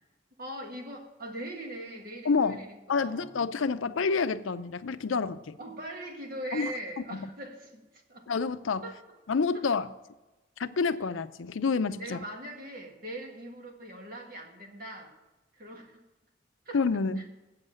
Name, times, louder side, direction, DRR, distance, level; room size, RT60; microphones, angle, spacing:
voice 1, 0.4-3.3 5.6-8.3 8.8-9.0 12.0-15.1 15.6-16.0 16.7-16.8 17.2-17.3, right 1 dB, 45° right, 2 dB, 1.7 m, -41 dB
voice 2, 2.2-2.6 2.9-5.6 6.5-7.3 8.3-8.8 9.3-9.9 10.6-12.2 16.7-17.3, left 4 dB, 80° left, 12 dB, 0.5 m, -28 dB
8.0 x 7.8 x 7.6 m, 1.0 s
head